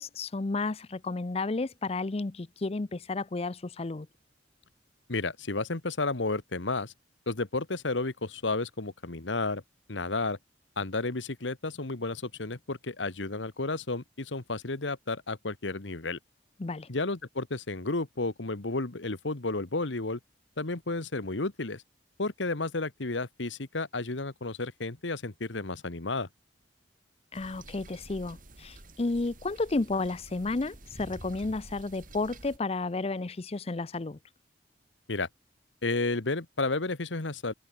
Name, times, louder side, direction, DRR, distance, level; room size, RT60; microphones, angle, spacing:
voice 1, 0.0-4.1 16.6-16.9 27.3-34.2, left 3 dB, 35° left, 0.6 m, -32 dB
voice 2, 5.1-6.9 7.3-9.6 9.9-10.4 10.8-16.2 16.9-20.2 20.6-21.8 22.2-26.3 35.1-35.3 35.8-37.5, left 3 dB, 90° left, 1.6 m, -32 dB
sound 1, 27.3-32.6, right 1 dB, 45° right, 5.2 m, -49 dB
head